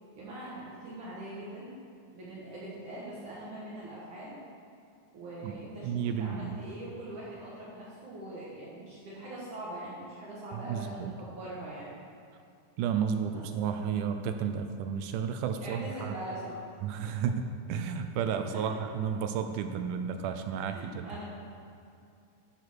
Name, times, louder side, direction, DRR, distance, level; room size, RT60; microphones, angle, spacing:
voice 1, 0.2-1.7 2.1-4.3 5.1-11.9 13.3-13.4 15.6-16.6 18.5-18.8 20.7-21.2, right 1 dB, 65° right, -7 dB, 2.9 m, -42 dB
voice 2, 5.8-6.6 10.6-11.1 12.8-16.1 16.8-21.1, right 7 dB, 80° right, 7 dB, 1.9 m, -32 dB
11.5 x 5.1 x 6.2 m, 2.5 s
omnidirectional pair, 4.0 m